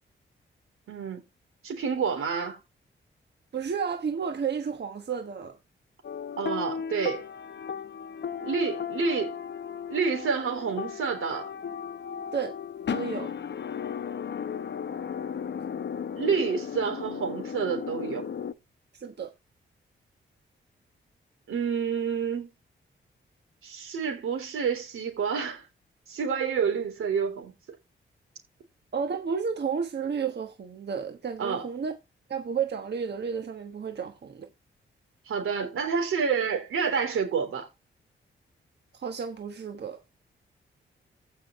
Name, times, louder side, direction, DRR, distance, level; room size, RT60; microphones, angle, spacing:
voice 1, 0.9-1.2 1.6-2.6 6.4-7.2 8.4-9.3 9.9-11.5 16.2-18.3 21.5-22.5 23.6-25.7 26.1-27.5 31.4-31.6 35.3-37.7, right 6 dB, 85° right, 3.6 m, -28 dB
voice 2, 3.5-5.6 12.3-12.5 12.9-13.4 18.9-19.3 28.9-31.9 32.3-34.5 38.9-40.0, right 6 dB, 55° right, 1.3 m, -32 dB
sound 1, 6.0-18.5, left 7 dB, 60° left, 0.8 m, -35 dB
15.5 x 5.9 x 3.1 m
cardioid pair, 65°, 21 cm